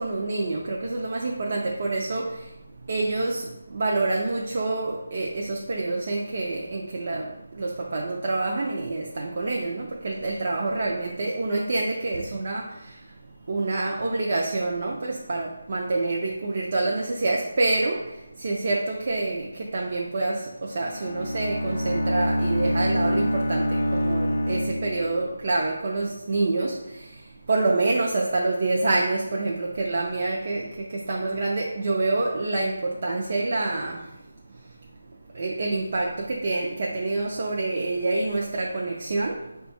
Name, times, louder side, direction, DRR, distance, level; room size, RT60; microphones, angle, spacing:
voice 1, 0.0-2.6 2.8-13.2 13.4-34.7 35.3-39.6, right 2 dB, 40° right, -2 dB, 0.4 m, -27 dB
Bowed string instrument, 20.7-25.4, equal, 45° left, 0.4 m, -26 dB
4.5 x 2.2 x 4.1 m, 0.88 s
figure-of-eight pair, 175°, 0 cm